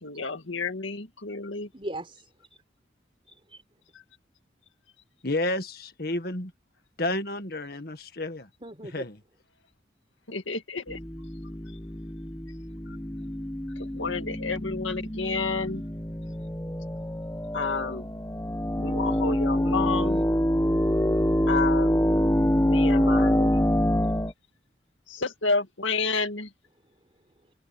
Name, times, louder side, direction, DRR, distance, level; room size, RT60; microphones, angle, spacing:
voice 1, 0.0-1.7 10.3-11.0 12.9-13.0 13.8-15.8 17.5-18.1 18.8-20.2 21.5-22.1 22.6-23.7 25.1-26.5, left 4 dB, 85° left, 2.1 m, -30 dB
voice 2, 1.7-2.6 3.2-3.6 8.6-9.1 27.1-27.5, right 1 dB, 30° right, 4.3 m, -40 dB
voice 3, 5.2-6.5 7.0-8.5 8.9-9.1, left 2 dB, 50° left, 1.8 m, -30 dB
sound 1, 10.9-24.3, equal, 15° left, 1.2 m, -26 dB
head